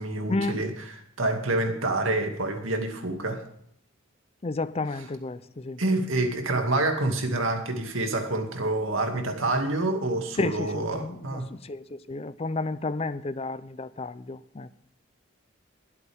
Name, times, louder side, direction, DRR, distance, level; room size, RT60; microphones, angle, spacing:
voice 1, 0.0-3.4 4.9-5.1 5.8-11.5, right 2 dB, 85° right, 2.3 m, -27 dB
voice 2, 4.4-5.8 10.4-14.8, left 3 dB, 30° left, 0.5 m, -32 dB
20.5 x 8.3 x 3.5 m
head